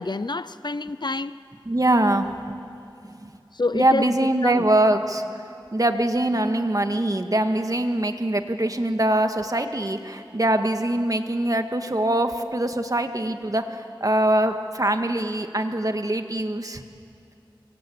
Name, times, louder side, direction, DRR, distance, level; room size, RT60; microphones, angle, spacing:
voice 1, 0.0-1.4 3.5-4.2 4.4-4.7, left 3 dB, 55° left, 0.7 m, -27 dB
voice 2, 1.7-2.3 3.0-3.3 3.7-5.2 5.7-16.8, right 1 dB, 45° right, 1.9 m, -23 dB
25.5 x 25.5 x 8.7 m
wide cardioid pair, 40°, 9 cm